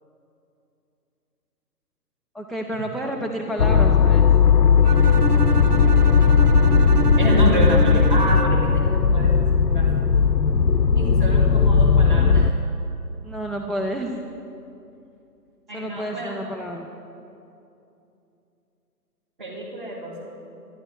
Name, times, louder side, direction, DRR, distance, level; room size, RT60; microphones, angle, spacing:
voice 1, 2.3-4.3 13.2-14.1 15.7-16.9, equal, ahead, 0 dB, 0.4 m, -29 dB
sound 1, 3.6-12.5, left 5 dB, 90° left, 0.7 m, -17 dB
Bowed string instrument, 4.8-8.8, right 3 dB, 70° right, 0.6 m, -28 dB
voice 2, 7.2-9.5 9.7-10.0 11.0-12.5 15.7-16.4 19.4-20.2, right 1 dB, 30° right, -2 dB, 2.4 m, -28 dB
24.5 x 10.5 x 3.5 m, 2.7 s
figure-of-eight pair, 160°, 49 cm